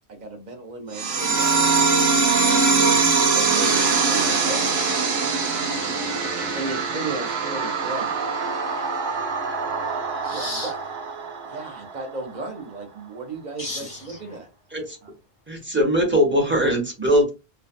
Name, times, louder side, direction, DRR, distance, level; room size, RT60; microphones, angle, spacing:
voice 1, 0.1-1.9 2.8-4.6 6.5-8.1 10.3-10.8 11.4-14.5 15.0-15.1, right 3 dB, 50° right, 0.7 m, -35 dB
sound 1, 0.9-12.0, right 4 dB, 75° right, 0.9 m, -22 dB
voice 2, 2.6-3.4 5.6-6.6 9.1-10.7 13.6-14.4, left 2 dB, 45° left, 0.5 m, -39 dB
voice 3, 15.5-17.3, equal, 15° right, 0.6 m, -20 dB
2.5 x 2.1 x 2.4 m
omnidirectional pair, 1.1 m